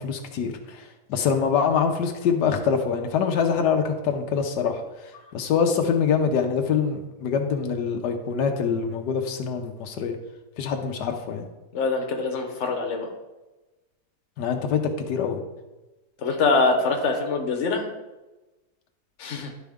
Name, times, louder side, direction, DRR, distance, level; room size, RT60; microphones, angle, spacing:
voice 1, 0.0-10.2 10.6-11.4 14.4-14.8 15.1-15.4, left 6 dB, 85° left, 4 dB, 1.4 m, -25 dB
voice 2, 11.7-13.1 16.2-17.8 19.2-19.5, left 3 dB, 50° left, 3 dB, 1.2 m, -24 dB
11.5 x 4.3 x 3.5 m, 1.1 s
omnidirectional pair, 1.7 m